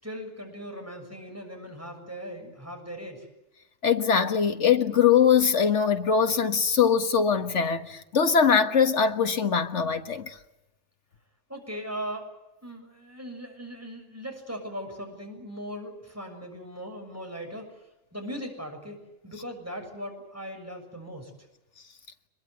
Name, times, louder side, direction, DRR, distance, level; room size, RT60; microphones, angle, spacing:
voice 1, 0.0-3.3 11.5-12.3 12.6-17.7 18.1-21.3, equal, 10° right, 6.8 m, -39 dB
voice 2, 3.8-10.4, left 7 dB, 70° left, 1.8 m, -22 dB
25.0 x 22.0 x 8.1 m
omnidirectional pair, 1.3 m